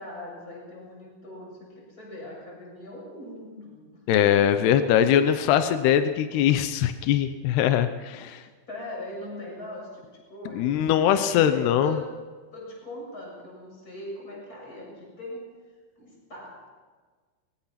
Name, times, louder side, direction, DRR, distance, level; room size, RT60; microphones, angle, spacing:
voice 1, 0.0-3.9 8.7-12.2 12.5-15.5 16.0-16.7, left 1 dB, 20° left, -1 dB, 7.5 m, -40 dB
voice 2, 4.1-8.4 10.6-12.0, left 10 dB, 85° left, 9 dB, 3.0 m, -22 dB
24.0 x 22.5 x 5.9 m, 1.4 s
omnidirectional pair, 4.6 m